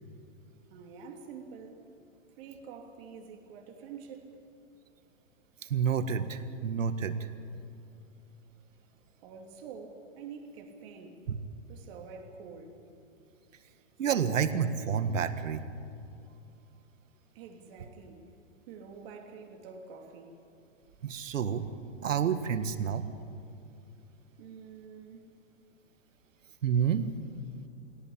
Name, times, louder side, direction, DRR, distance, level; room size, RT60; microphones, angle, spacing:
voice 1, 0.7-1.9 2.4-4.4 9.2-11.3 11.7-12.8 17.3-18.3 18.7-20.4 24.4-25.3, right 5 dB, 50° right, 3.3 m, -47 dB
voice 2, 5.7-7.2 14.0-15.6 21.0-21.6 22.0-23.0 26.6-27.1, right 7 dB, 85° right, 1.8 m, -29 dB
24.5 x 17.5 x 8.7 m
hypercardioid pair, 135°, 37 cm